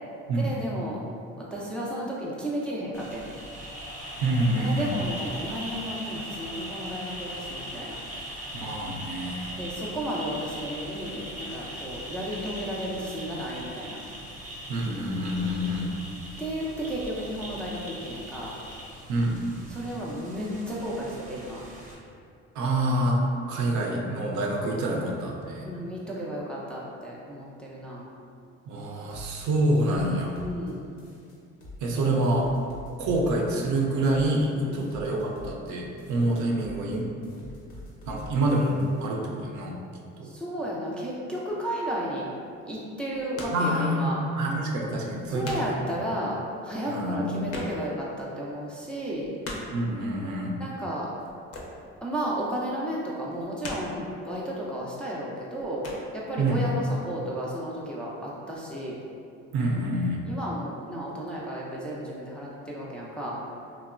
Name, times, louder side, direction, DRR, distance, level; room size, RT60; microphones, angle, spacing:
voice 1, 0.4-1.0 1.4-3.3 4.5-8.0 9.6-14.0 16.4-18.6 19.7-21.6 25.6-28.1 30.4-30.9 34.6-34.8 40.2-42.3 42.7-44.2 45.3-49.3 50.6-51.1 52.0-55.9 56.1-59.0 60.2-63.4, equal, 5° left, -5 dB, 0.4 m, -33 dB
sound 1, 2.9-21.9, equal, 25° right, 0.7 m, -40 dB
voice 2, 4.1-4.9 8.5-9.6 14.7-15.9 19.1-19.4 22.5-25.7 28.7-30.4 31.8-32.6 33.0-37.1 38.1-39.8 40.2-40.3 43.5-45.6 46.9-47.5 49.7-50.6 56.4-56.7 59.5-60.2, right 1 dB, 60° right, -1 dB, 0.5 m, -27 dB
sound 2, 29.1-30.7 31.0-32.0 32.2-35.7 36.0-37.0 37.2-39.1, left 1 dB, 80° left, 0.7 m, -45 dB
sound 3, 41.5-41.8 42.9-43.7 44.1-44.2 44.8-44.9 45.1-45.9 46.1-46.2 46.5-46.6 46.8-48.1 48.4-48.5 48.9-49.8 51.2-52.0 52.3-52.6 53.2-54.2 54.8-55.0 55.4-56.1, left 2 dB, 45° left, 0.6 m, -40 dB
2.9 x 2.0 x 2.4 m, 2.4 s
supercardioid pair, 70°, 33 cm